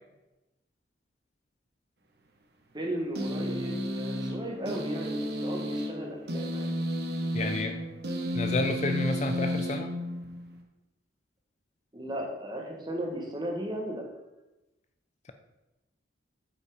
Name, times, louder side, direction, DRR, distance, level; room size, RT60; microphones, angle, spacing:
voice 1, 2.7-6.7 11.9-14.0, right 1 dB, 25° right, 0 dB, 1.6 m, -36 dB
sound 1, 3.1-10.6, equal, 55° right, 1.2 m, -32 dB
voice 2, 7.3-7.8 8.3-9.9, left 2 dB, 35° left, 7 dB, 0.5 m, -30 dB
8.6 x 5.6 x 4.9 m, 0.99 s
head